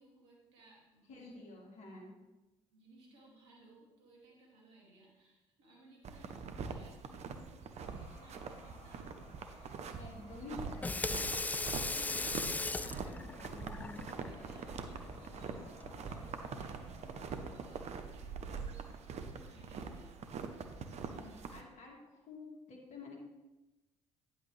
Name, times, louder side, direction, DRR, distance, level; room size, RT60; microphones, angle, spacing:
voice 1, 0.0-1.4 2.7-10.2 11.9-13.0 13.9-21.4, right 2 dB, 70° right, -3 dB, 2.5 m, -62 dB
voice 2, 1.1-2.1 9.9-11.2 12.8-14.1 21.0-23.2, left 3 dB, 45° left, -1 dB, 2.5 m, -50 dB
sound 1, 6.0-21.6, right 5 dB, 45° right, 0.9 m, -44 dB
sound 2, 7.8-17.8, left 1 dB, 75° left, 2.0 m, -57 dB
Water tap faucet / Sink (filling or washing), 10.6-16.1, left 3 dB, 10° left, 0.3 m, -39 dB
10.0 x 8.5 x 3.3 m, 1.1 s
figure-of-eight pair, 50°, 16 cm